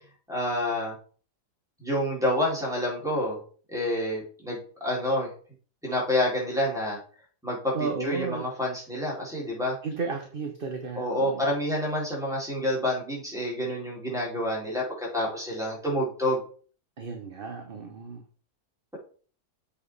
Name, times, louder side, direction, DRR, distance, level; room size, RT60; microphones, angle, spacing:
voice 1, 0.3-0.9 1.8-3.4 3.7-5.3 5.8-7.0 7.4-9.7 10.9-16.4, left 1 dB, ahead, -4 dB, 4.0 m, -28 dB
voice 2, 7.7-8.4 9.8-11.4 17.0-18.2, right 4 dB, 40° right, 4 dB, 1.1 m, -33 dB
7.8 x 5.1 x 4.8 m, 0.42 s
omnidirectional pair, 1.7 m